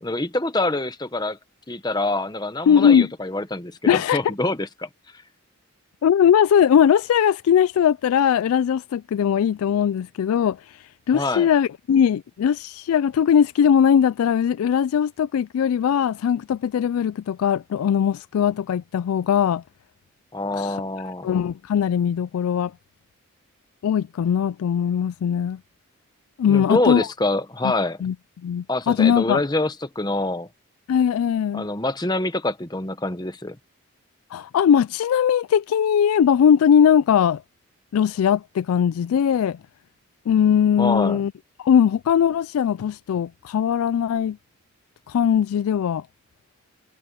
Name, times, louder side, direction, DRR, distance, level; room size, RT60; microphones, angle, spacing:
voice 1, 0.0-1.4 1.7-4.9 11.1-11.5 20.3-21.3 26.5-28.0 28.7-30.5 31.5-33.6 40.8-41.2, left 2 dB, 20° left, 1.0 m, -25 dB
voice 2, 2.7-3.1 3.9-4.2 6.0-19.6 20.5-20.8 21.2-22.7 23.8-25.6 26.4-27.1 28.0-28.1 28.4-29.4 30.9-31.6 34.3-37.4 37.9-39.6 40.3-41.3 41.6-44.4 45.1-46.0, left 8 dB, 80° left, 0.3 m, -20 dB
head